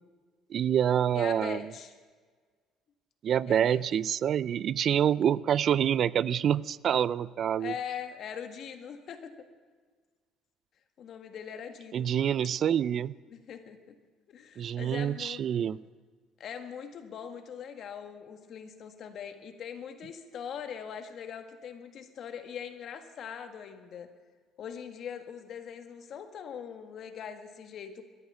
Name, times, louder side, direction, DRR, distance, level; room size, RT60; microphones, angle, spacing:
voice 1, 0.5-1.6 3.2-7.7 11.9-13.1 14.6-15.8, right 9 dB, 50° right, 20 dB, 0.3 m, -27 dB
voice 2, 1.1-1.9 3.4-3.8 7.6-9.3 11.0-12.1 13.3-13.9 14.3-15.4 16.4-24.1 24.6-28.0, left 8 dB, 55° left, 7 dB, 1.8 m, -41 dB
14.0 x 11.0 x 9.2 m, 1.5 s
cardioid pair, 95°, 0 cm